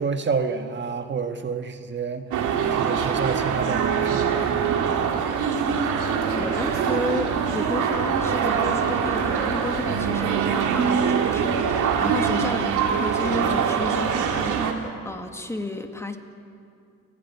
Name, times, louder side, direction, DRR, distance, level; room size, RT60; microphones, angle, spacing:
voice 1, 0.0-4.6, right 5 dB, 40° right, 7 dB, 1.5 m, -29 dB
sound 1, 2.3-14.7, right 7 dB, 80° right, 2.3 m, -23 dB
voice 2, 6.3-16.2, left 1 dB, 10° left, 6 dB, 1.9 m, -32 dB
29.5 x 11.5 x 9.4 m, 2.5 s
cardioid pair, 90°, 30 cm